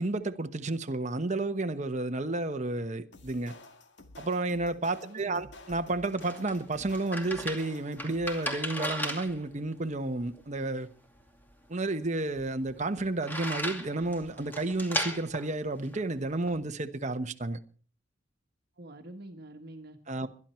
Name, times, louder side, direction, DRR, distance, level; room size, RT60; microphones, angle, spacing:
voice 1, 0.0-3.5 4.2-10.9 11.7-17.6 20.1-20.3, right 2 dB, 35° right, 1.1 m, -31 dB
sound 1, 3.1-8.8, left 2 dB, 65° left, 1.9 m, -51 dB
voice 2, 5.0-5.5 18.8-20.3, right 1 dB, 55° right, 1.5 m, -47 dB
sound 2, 5.8-16.6, equal, 10° left, 2.4 m, -38 dB
21.5 x 12.0 x 4.4 m
head